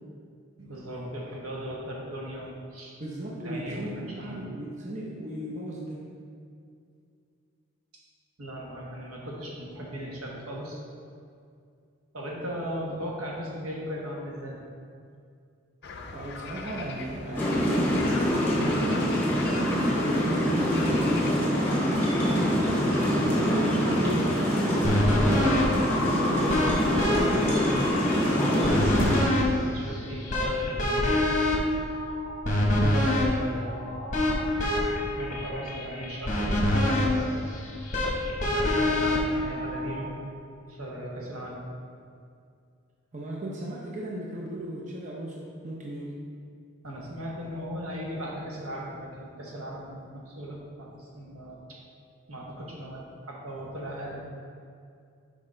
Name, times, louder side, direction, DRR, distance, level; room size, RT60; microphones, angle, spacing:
voice 1, 0.6-3.0 3.3-4.4 8.4-10.8 12.1-14.6 23.1-23.5 27.1-29.4 29.6-31.2 33.0-33.7 35.2-37.3 38.4-40.1 40.7-41.6 46.8-51.8 52.3-54.2, equal, 80° right, -3 dB, 1.2 m, -38 dB
voice 2, 2.9-6.1 16.1-19.1 20.0-21.4 23.1-26.6 32.8-33.1 43.1-46.2, right 1 dB, 35° right, -3 dB, 0.6 m, -35 dB
sound 1, 15.8-21.3, left 3 dB, 50° left, 0.5 m, -40 dB
sound 2, 17.3-29.2, equal, 10° left, 1.2 m, -25 dB
sound 3, 24.8-40.1, left 1 dB, 35° left, 0.9 m, -26 dB
6.2 x 4.9 x 3.8 m, 2.4 s
head